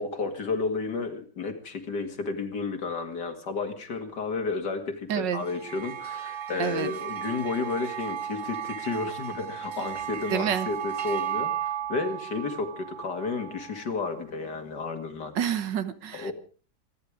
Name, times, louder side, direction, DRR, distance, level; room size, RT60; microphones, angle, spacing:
voice 1, 0.0-11.5 11.9-15.3 16.1-16.3, left 4 dB, 70° left, 6 dB, 2.8 m, -32 dB
voice 2, 5.1-5.4 6.6-6.9 10.3-10.7 15.4-16.3, right 9 dB, 85° right, 13 dB, 1.9 m, -28 dB
sound 1, 5.4-14.0, right 9 dB, 45° right, 0.6 m, -35 dB
27.0 x 10.5 x 4.9 m, 0.39 s
omnidirectional pair, 1.9 m